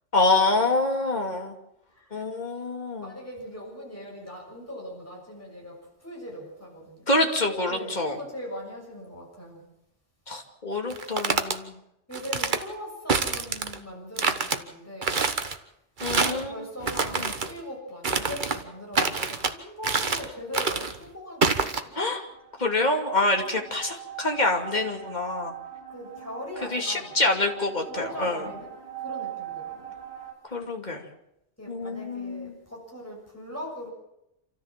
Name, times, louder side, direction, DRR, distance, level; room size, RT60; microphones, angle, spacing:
voice 1, 0.1-1.5 2.1-3.1 7.1-8.2 10.3-11.7 16.0-16.5 17.2-17.3 22.0-22.2 22.6-25.5 26.7-28.4 30.5-31.0 31.7-32.6, left 2 dB, 40° left, 2 dB, 2.7 m, -26 dB
voice 2, 1.9-2.2 3.0-7.1 7.5-9.6 12.1-15.1 16.1-22.0 25.9-27.2 27.8-28.7 29.0-29.9 31.6-33.9, left 1 dB, 10° left, -2 dB, 6.8 m, -40 dB
sound 1, 10.9-11.6 12.1-12.6 13.1-13.8 14.2-14.6 15.0-15.6 16.0-16.5 16.8-17.5 18.0-18.6 18.9-19.5 19.8-20.3 20.5-21.0 21.4-21.8, right 4 dB, 45° right, 1.3 m, -26 dB
sound 2, 22.3-30.3, right 10 dB, 65° right, 5.9 m, -41 dB
28.0 x 14.0 x 7.5 m, 0.83 s
omnidirectional pair, 1.2 m